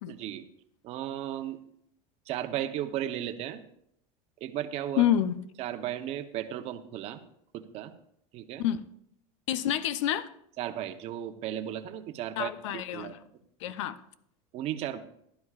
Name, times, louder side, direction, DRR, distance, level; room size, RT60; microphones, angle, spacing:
voice 1, 0.1-0.4 0.8-1.6 2.3-3.6 4.4-5.0 5.6-7.2 7.5-7.9 8.3-8.6 10.6-13.1 14.5-15.0, right 11 dB, 40° right, 0.8 m, -35 dB
voice 2, 5.0-5.4 8.6-8.8 9.5-10.3 12.4-13.2 13.6-14.0, left 11 dB, 90° left, 0.6 m, -28 dB
15.5 x 11.5 x 2.4 m
supercardioid pair, 150°, 15 cm